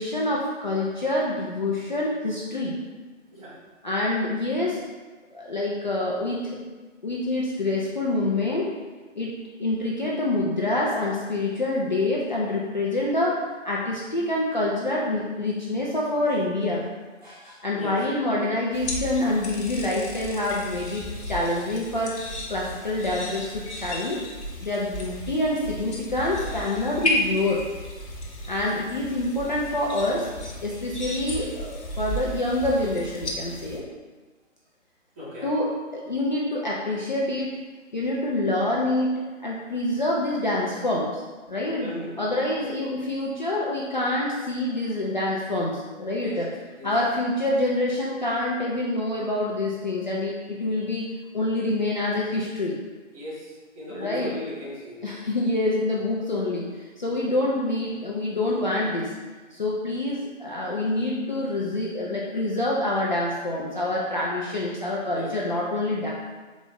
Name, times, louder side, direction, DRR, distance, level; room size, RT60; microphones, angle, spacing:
voice 1, 0.0-2.8 3.8-4.8 5.3-6.6 7.0-8.7 9.2-16.9 17.2-22.1 22.5-24.2 24.6-27.6 28.5-30.3 30.6-33.8 35.4-37.6 37.9-41.2 41.5-41.9 42.2-46.5 46.8-51.1 51.3-52.8 53.9-54.3 55.0-59.1 59.5-66.1, left 2 dB, 40° left, -5 dB, 0.4 m, -26 dB
sound 1, 18.7-33.8, left 1 dB, 60° left, 0.9 m, -34 dB
voice 2, 35.2-35.5 41.8-42.4 46.2-46.4 46.7-46.9 53.1-55.0 58.8-58.9 65.1-65.3, left 1 dB, 30° right, -8 dB, 1.2 m, -38 dB
4.0 x 2.4 x 3.6 m, 1.3 s
figure-of-eight pair, 140°, 39 cm